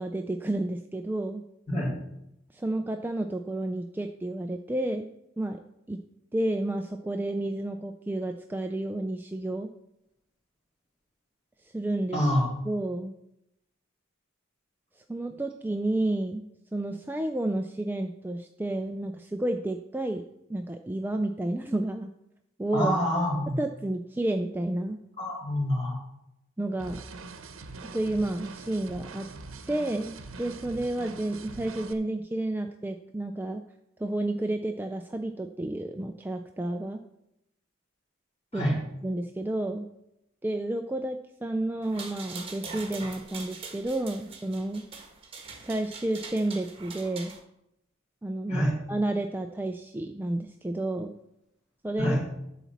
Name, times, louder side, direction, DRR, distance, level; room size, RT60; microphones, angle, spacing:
voice 1, 0.0-1.4 2.5-5.1 5.4-5.6 5.9-6.0 6.3-9.7 11.6-12.2 12.7-13.1 15.0-20.2 20.5-22.1 22.6-22.9 23.6-25.0 26.6-27.0 27.8-29.3 29.7-33.6 34.0-37.0 38.5-38.6 39.0-39.9 40.4-44.8 45.6-47.3 48.2-51.1 51.8-52.2, right 1 dB, 10° right, 5 dB, 0.3 m, -31 dB
voice 2, 12.1-12.4 22.7-23.6 25.2-26.0 38.5-38.8 48.5-48.7 52.0-52.2, equal, 30° left, -5 dB, 3.4 m, -26 dB
sound 1, 26.8-31.9, right 3 dB, 75° right, 0.9 m, -43 dB
sound 2, 41.8-47.4, right 4 dB, 25° right, 1.4 m, -43 dB
11.5 x 4.1 x 7.1 m, 0.83 s
head